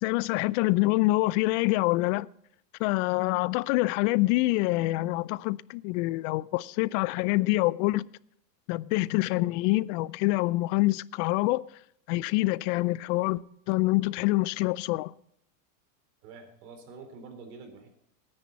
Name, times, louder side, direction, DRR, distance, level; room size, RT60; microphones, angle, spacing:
voice 1, 0.0-2.3 2.8-8.1 8.7-11.6 12.1-15.1, left 20 dB, 50° left, 0.6 m, -26 dB
voice 2, 16.2-17.9, right 4 dB, 70° right, 4.0 m, -46 dB
19.0 x 9.9 x 4.1 m
supercardioid pair, 125°, 50 cm